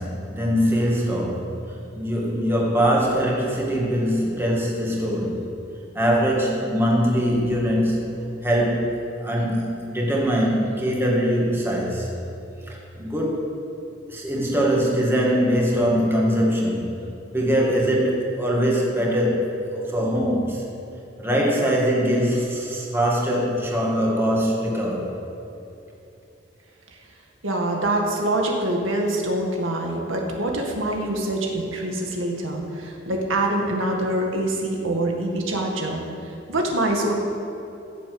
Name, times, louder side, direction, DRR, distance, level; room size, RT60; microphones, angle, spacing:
voice 1, 0.0-5.4 5.9-8.9 9.2-12.1 12.7-13.5 14.1-16.9 17.3-20.6 21.2-25.1, equal, 10° right, -3 dB, 2.1 m, -22 dB
voice 2, 27.4-36.0 36.5-37.1, right 1 dB, 90° right, 1 dB, 2.1 m, -25 dB
15.0 x 7.3 x 8.0 m, 2.9 s
head